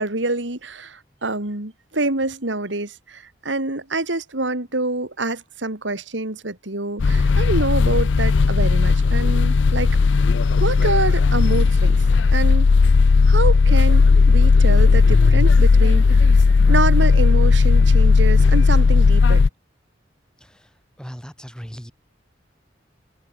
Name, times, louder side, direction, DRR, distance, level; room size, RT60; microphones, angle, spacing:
voice 1, 0.0-9.9 10.6-12.0 12.3-12.7 13.3-16.3 16.7-19.4, right 2 dB, 85° right, 3.3 m, -26 dB
sound 1, 7.0-19.5, left 4 dB, 75° left, 0.5 m, -15 dB
voice 2, 21.0-21.9, equal, 5° left, 7.0 m, -37 dB
head